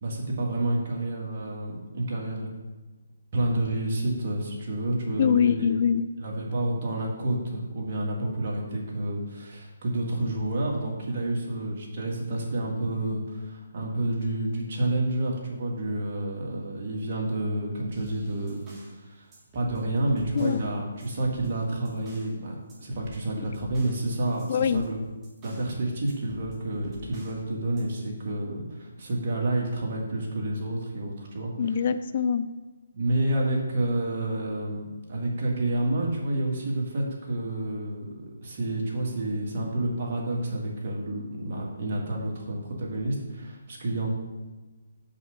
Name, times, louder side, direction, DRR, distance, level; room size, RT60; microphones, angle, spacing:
voice 1, 0.0-2.5 3.3-5.7 6.2-18.6 19.0-19.3 19.5-25.0 25.4-31.8 32.9-44.1, right 1 dB, 45° right, -2 dB, 1.9 m, -29 dB
voice 2, 5.2-6.0 20.3-20.6 24.5-24.9 31.6-32.5, left 7 dB, 45° left, 12 dB, 0.3 m, -23 dB
sound 1, 17.9-19.0 19.3-20.7 21.0-22.4 22.7-25.7 26.1-27.4 27.8-27.9, equal, 20° right, 1.4 m, -49 dB
5.5 x 4.8 x 6.4 m, 1.2 s
hypercardioid pair, 155°, 0 cm